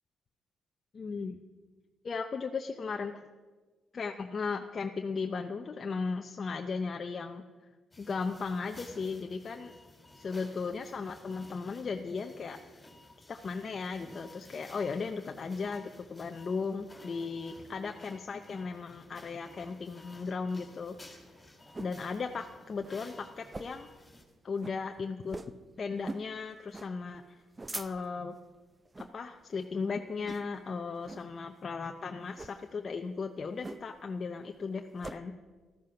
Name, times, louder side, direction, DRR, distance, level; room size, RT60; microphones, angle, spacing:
voice 1, 0.9-1.4 2.0-3.2 3.9-7.4 8.0-9.7 10.2-12.6 13.3-21.0 21.8-23.9 24.4-25.4 25.8-27.4 27.7-28.4 29.0-35.3, left 4 dB, 40° left, 4 dB, 0.7 m, -36 dB
sound 1, 7.9-24.2, left 2 dB, 15° left, 3.2 m, -55 dB
sound 2, 20.8-22.0 22.4-22.5 22.8-23.0 23.5-23.9 24.2-24.3 24.6-24.8 25.3-25.6 26.0-26.3 26.7-26.9 27.4-28.2 28.9-29.2 29.6-29.8 30.2-30.7 31.1-31.3 32.3-32.6 33.6-34.1 34.4-35.2, right 2 dB, 20° right, 0.6 m, -43 dB
14.0 x 13.0 x 5.8 m, 1.3 s
cardioid pair, 90°, 0 cm